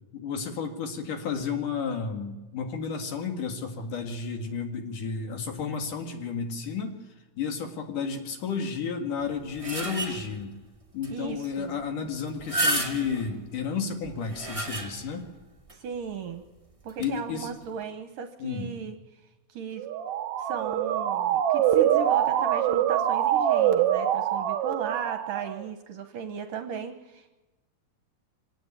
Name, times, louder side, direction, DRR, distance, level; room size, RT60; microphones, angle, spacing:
voice 1, 0.1-7.0 7.4-10.5 10.9-15.2 17.0-17.5 18.4-18.7, left 5 dB, 55° left, 4 dB, 3.1 m, -32 dB
sound 1, 9.2-10.4 11.0-11.1 11.4-11.5 12.3-13.3 14.0-15.2 15.7-15.8 16.9-17.1, right 1 dB, 15° right, 1.0 m, -31 dB
voice 2, 11.1-11.8 15.7-16.4 16.8-19.0 19.5-19.9 20.4-27.3, right 7 dB, 65° right, 7 dB, 2.4 m, -36 dB
Motor vehicle (road) / Siren, 19.8-25.6, right 10 dB, 85° right, 1.6 m, -24 dB
25.5 x 17.5 x 9.0 m, 1.1 s
omnidirectional pair, 4.8 m